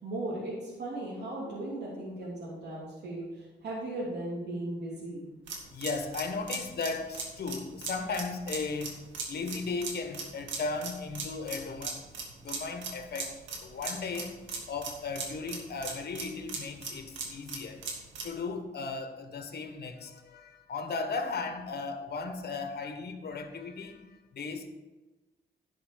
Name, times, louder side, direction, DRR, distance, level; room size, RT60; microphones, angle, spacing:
voice 1, 0.0-5.2, right 1 dB, 70° right, -6 dB, 2.9 m, -37 dB
sound 1, 5.5-18.4, right 4 dB, 90° right, 1.9 m, -39 dB
voice 2, 5.7-9.0 9.3-12.0 12.4-13.3 13.6-14.3 14.7-17.8 18.2-24.0 24.3-24.7, left 4 dB, 60° left, 6 dB, 1.5 m, -36 dB
11.5 x 5.7 x 5.8 m, 1.2 s
cardioid pair, 70°, 19 cm